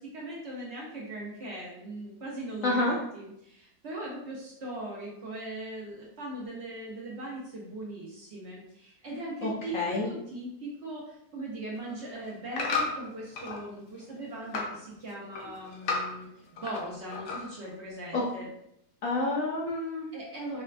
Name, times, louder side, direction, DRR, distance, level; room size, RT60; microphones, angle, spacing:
voice 1, 0.0-18.5 20.1-20.6, right 1 dB, 60° right, -4 dB, 0.7 m, -39 dB
voice 2, 2.6-3.0 9.4-10.1 18.1-18.2 19.0-20.1, left 2 dB, 65° left, -3 dB, 0.8 m, -28 dB
sound 1, 11.8-13.6 14.0-14.8 15.1-16.8 17.1-17.7 18.1-18.2, left 4 dB, 85° left, 1.3 m, -33 dB
4.1 x 2.2 x 2.4 m, 0.77 s
omnidirectional pair, 1.8 m